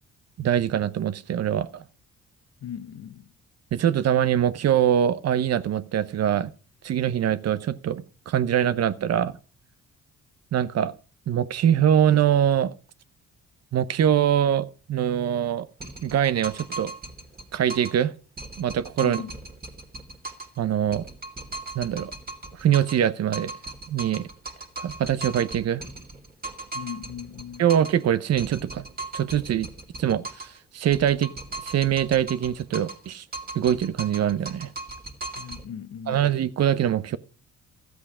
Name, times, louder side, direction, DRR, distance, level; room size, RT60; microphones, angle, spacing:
voice 1, 0.4-1.8 3.7-6.5 6.8-9.4 10.5-10.9 11.3-12.7 13.7-15.7 16.0-16.9 17.5-18.1 18.6-19.2 20.6-21.1 21.7-22.1 22.6-23.5 23.9-24.3 24.8-25.8 27.6-28.9 29.1-29.7 30.0-31.3 31.6-33.2 33.5-34.7 36.1-37.2, right 10 dB, 60° right, 0.8 m, -23 dB
voice 2, 2.6-3.3 19.0-19.4 26.7-27.7 35.3-36.3, left 9 dB, 55° left, 0.8 m, -38 dB
sound 1, 15.8-18.0 18.4-20.6 20.9-23.1 23.3-28.0 28.4-30.6 30.9-33.1 33.3-35.6, right 2 dB, 30° right, 2.3 m, -38 dB
13.5 x 8.2 x 4.9 m
cardioid pair, 90°, 30 cm